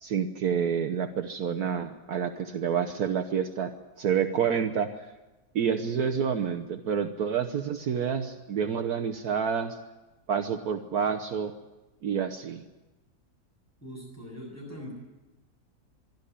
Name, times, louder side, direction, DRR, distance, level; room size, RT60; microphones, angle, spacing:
voice 1, 0.0-3.7 4.0-4.9 5.5-9.8 10.3-11.5 12.0-12.6, right 7 dB, 65° right, 8 dB, 1.4 m, -28 dB
voice 2, 13.8-14.9, equal, 10° left, -1 dB, 8.0 m, -41 dB
24.0 x 12.5 x 10.0 m, 1.1 s
omnidirectional pair, 1.8 m